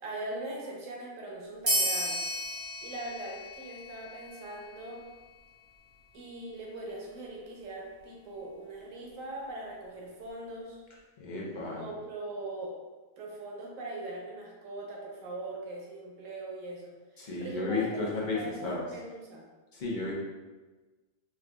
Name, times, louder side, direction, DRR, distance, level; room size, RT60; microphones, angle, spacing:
voice 1, 0.0-2.2 2.8-5.0 6.1-10.8 11.6-12.7 13.2-19.4, right 2 dB, 70° right, -1 dB, 1.1 m, -41 dB
sound 1, 1.7-4.7, equal, 20° right, 0.7 m, -33 dB
voice 2, 11.2-11.9 17.2-18.9 19.7-20.1, left 3 dB, 50° left, -4 dB, 0.6 m, -33 dB
4.7 x 2.4 x 2.3 m, 1.3 s
omnidirectional pair, 1.5 m